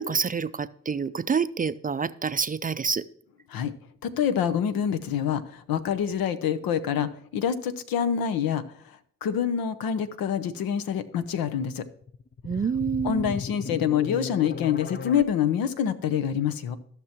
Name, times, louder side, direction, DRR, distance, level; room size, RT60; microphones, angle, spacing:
voice 1, 0.0-3.0 12.4-13.4, right 6 dB, 25° right, 15 dB, 0.4 m, -27 dB
voice 2, 4.0-11.8 13.0-16.8, left 8 dB, 80° left, 11 dB, 0.8 m, -26 dB
sound 1, 12.0-15.2, left 5 dB, 30° left, 0.5 m, -37 dB
15.0 x 6.0 x 2.9 m, 0.62 s
supercardioid pair, 50°, 35 cm